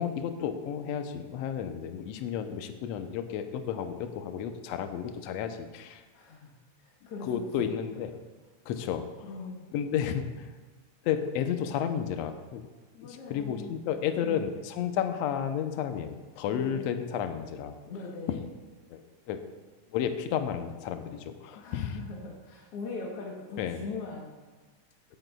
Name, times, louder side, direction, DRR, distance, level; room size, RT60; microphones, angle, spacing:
voice 1, 0.0-6.0 7.2-8.1 8.7-9.3 9.7-10.5 11.0-12.7 13.0-17.7 18.3-18.4 18.9-19.4 19.9-22.0 23.6-23.8, left 8 dB, 80° left, 7 dB, 1.5 m, -32 dB
voice 2, 6.1-8.0 9.2-9.7 12.9-13.8 14.2-14.4 16.5-16.8 17.9-18.5 21.5-24.4, left 4 dB, 60° left, -3 dB, 1.7 m, -41 dB
16.0 x 9.0 x 2.3 m, 1.4 s
omnidirectional pair, 3.7 m